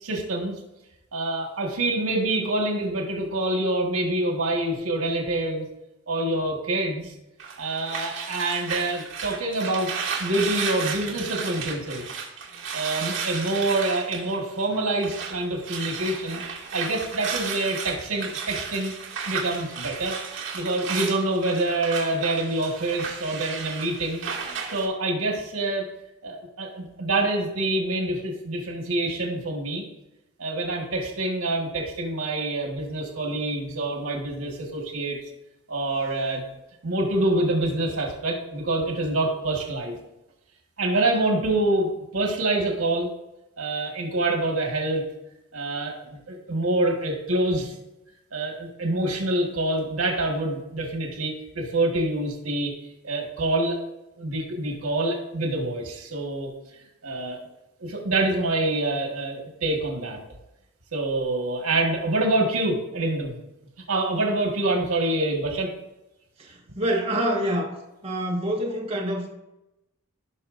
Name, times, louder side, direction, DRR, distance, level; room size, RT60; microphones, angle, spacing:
voice 1, 0.0-0.5 1.1-5.6 6.1-7.1 7.6-9.9 10.2-12.0 12.7-16.4 16.7-18.9 19.3-20.2 20.5-24.2 24.7-25.8 26.2-29.8 30.4-35.2 35.7-36.4 36.8-39.9 40.8-43.1 43.6-45.0 45.5-47.7 48.3-52.7 53.0-53.8 54.2-56.5 57.0-57.4 57.8-60.2 60.9-63.3 63.9-65.7, right 2 dB, 85° right, 1 dB, 1.7 m, -26 dB
sound 1, 7.4-15.4 15.6-24.8, right 6 dB, 65° right, 1.9 m, -33 dB
voice 2, 66.4-67.7 68.0-69.3, right 1 dB, 25° right, -3 dB, 1.5 m, -26 dB
16.0 x 5.8 x 2.6 m, 0.94 s
head